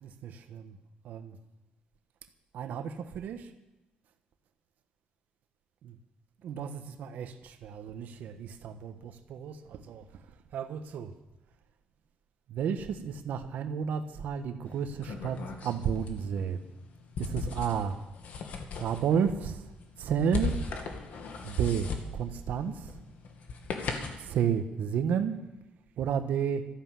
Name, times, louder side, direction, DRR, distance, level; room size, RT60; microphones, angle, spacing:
voice 1, 0.0-0.8 1.0-1.4 2.5-3.5 5.8-6.0 6.4-11.1 12.5-16.6 17.2-18.0 18.8-20.5 21.4-23.0 24.2-25.4 26.0-26.7, right 7 dB, 70° right, 8 dB, 1.3 m, -32 dB
sound 1, 14.7-24.3, left 4 dB, 60° left, 2.0 m, -38 dB
13.5 x 11.5 x 7.6 m, 1.0 s
cardioid pair, 135°, 3 cm